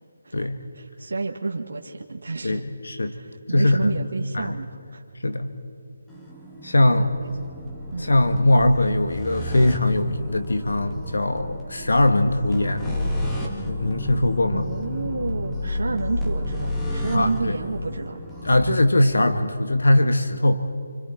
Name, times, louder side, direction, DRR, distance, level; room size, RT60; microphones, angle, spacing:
voice 1, 0.7-2.6 3.0-5.0 6.8-7.3 7.9-8.1 14.5-18.2, right 3 dB, 75° right, 2 dB, 1.7 m, -30 dB
voice 2, 2.4-3.1 3.5-3.9 4.3-4.5 5.2-5.5 6.6-7.0 8.0-13.0 13.7-14.6 17.1-17.6 18.4-20.7, left 1 dB, 85° left, 8 dB, 1.6 m, -21 dB
sound 1, 6.1-18.7, left 1 dB, 5° left, 2.1 m, -31 dB
28.5 x 26.0 x 4.5 m, 2.4 s
figure-of-eight pair, 160°, 0 cm